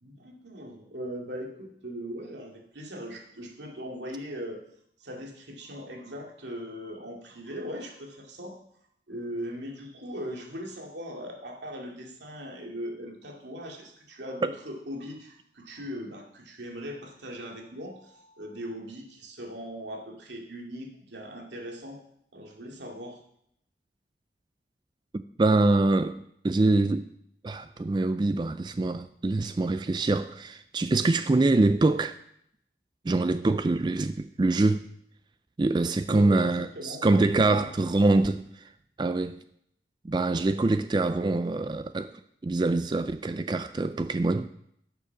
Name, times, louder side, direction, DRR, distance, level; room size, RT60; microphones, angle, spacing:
voice 1, 0.0-4.6 5.0-8.5 9.1-22.0 22.3-23.2 36.0-37.7, equal, 90° right, 2.4 m, -39 dB
voice 2, 25.1-26.2 26.4-27.1 27.4-32.2 33.1-34.8 35.6-38.4 39.0-39.4 40.0-42.1 42.4-44.5, right 2 dB, 25° right, 0.3 m, -24 dB
12.0 x 6.8 x 5.8 m
head